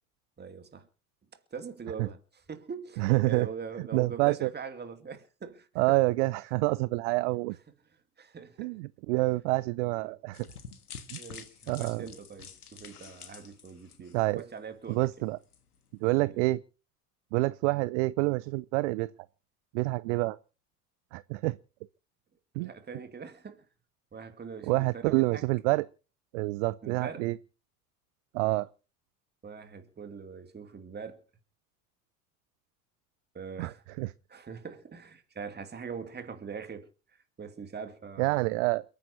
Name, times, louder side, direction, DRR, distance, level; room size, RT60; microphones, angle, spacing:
voice 1, 0.4-0.9 1.5-6.0 8.2-8.7 10.0-10.1 11.2-15.3 16.2-16.4 22.5-23.6 24.1-25.4 26.8-27.3 29.4-31.2 33.3-36.9 37.4-38.5, right 6 dB, 20° right, 2.5 m, -43 dB
voice 2, 3.0-3.5 3.9-4.5 5.8-7.6 8.6-10.5 11.1-11.2 11.7-12.0 14.1-14.4 14.9-15.4 16.0-16.6 17.3-19.1 19.7-20.4 21.1-21.6 22.6-22.7 24.6-25.8 26.3-27.4 28.3-28.7 33.6-34.1 38.2-38.8, right 22 dB, 55° right, 0.6 m, -27 dB
sound 1, 10.3-14.6 14.9-15.1 15.5-15.6, left 7 dB, 80° left, 1.7 m, -48 dB
29.0 x 9.7 x 2.8 m
figure-of-eight pair, 70°, 45 cm